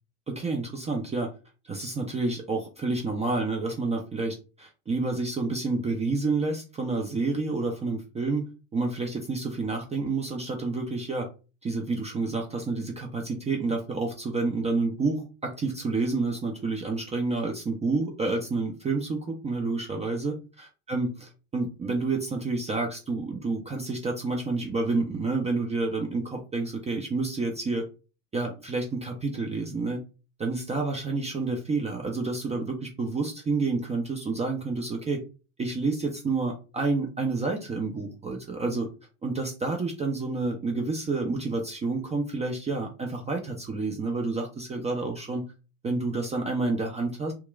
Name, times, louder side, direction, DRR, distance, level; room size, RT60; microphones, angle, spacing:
voice 1, 0.3-1.3 1.6-8.5 8.7-11.3 11.6-27.8 28.3-30.0 30.4-35.2 35.6-38.9 39.2-45.5 45.8-47.3, right 3 dB, 15° right, 2 dB, 0.4 m, -29 dB
2.9 x 2.3 x 2.2 m, 0.33 s
hypercardioid pair, 90°, 41 cm